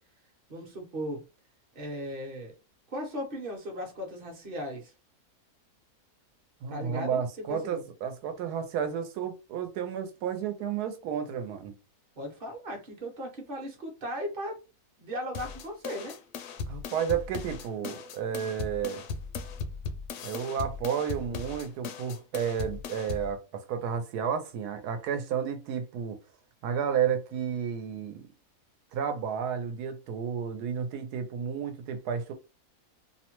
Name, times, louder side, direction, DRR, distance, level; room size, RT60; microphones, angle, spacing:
voice 1, 0.5-1.2 1.7-2.6 2.9-4.9 6.7-7.8 12.2-14.6 15.0-16.2, equal, 45° right, 0.9 m, -37 dB
voice 2, 6.6-11.7 16.7-19.0 20.2-26.2 26.6-28.3 28.9-32.3, right 7 dB, 90° right, 1.1 m, -32 dB
sound 1, 15.3-23.3, left 5 dB, 70° left, 0.7 m, -38 dB
2.7 x 2.1 x 2.9 m
omnidirectional pair, 1.6 m